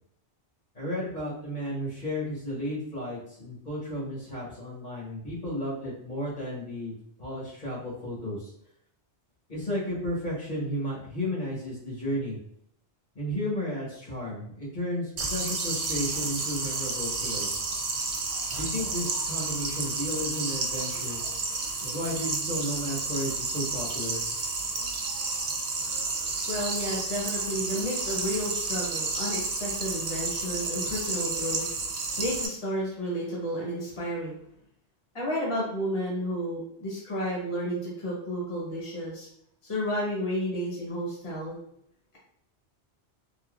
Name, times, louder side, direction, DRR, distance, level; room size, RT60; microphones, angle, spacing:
voice 1, 0.7-6.9 7.2-8.5 9.5-12.4 13.1-17.6 18.6-21.2 21.8-24.2, equal, 45° left, -6 dB, 1.2 m, -33 dB
sound 1, 15.2-32.5, right 3 dB, 50° right, 0.4 m, -31 dB
voice 2, 26.5-31.8 32.2-34.4 35.1-39.3 39.6-41.6, equal, 30° left, -4 dB, 1.0 m, -32 dB
3.6 x 2.6 x 2.4 m, 0.70 s
omnidirectional pair, 1.2 m